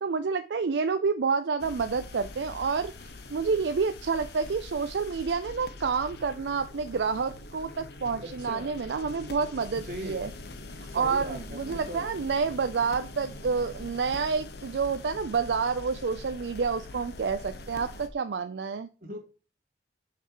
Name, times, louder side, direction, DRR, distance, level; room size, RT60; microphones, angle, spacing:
voice 1, 0.0-2.9 3.3-10.3 10.8-18.9, right 5 dB, 80° right, 8 dB, 0.5 m, -29 dB
sound 1, 1.6-18.1, left 2 dB, 65° left, 0.8 m, -43 dB
voice 2, 8.2-8.7 9.8-10.2 11.0-12.1 19.0-19.2, equal, 55° right, 2 dB, 1.9 m, -39 dB
6.5 x 5.6 x 3.0 m, 0.33 s
head